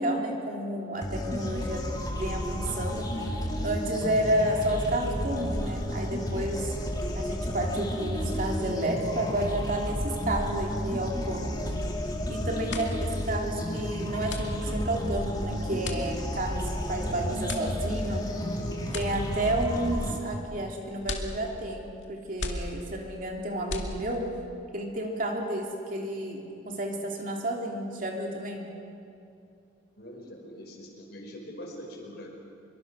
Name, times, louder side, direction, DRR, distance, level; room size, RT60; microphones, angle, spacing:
voice 1, 0.0-3.1 3.6-6.7 7.1-11.7 12.3-24.3 24.7-28.7, right 1 dB, 45° right, 1 dB, 2.9 m, -31 dB
sound 1, 1.0-20.2, equal, 20° left, 2.4 m, -32 dB
sound 2, 12.7-24.4, left 2 dB, 85° left, 2.3 m, -40 dB
voice 2, 30.0-32.3, equal, 60° left, 1 dB, 4.7 m, -43 dB
25.0 x 23.0 x 6.3 m, 2.6 s
head